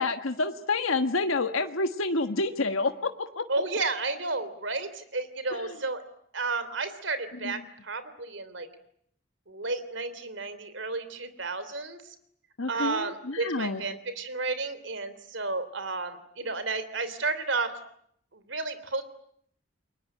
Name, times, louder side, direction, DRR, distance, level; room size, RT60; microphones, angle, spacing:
voice 1, 0.0-3.4 5.5-5.6 7.4-7.5 12.6-13.8, left 3 dB, 90° left, 7 dB, 1.5 m, -28 dB
voice 2, 3.5-6.0 6.3-8.7 9.5-12.0 12.7-17.7 18.3-19.0, right 3 dB, 65° right, 13 dB, 3.2 m, -32 dB
29.5 x 22.5 x 9.0 m, 0.71 s
head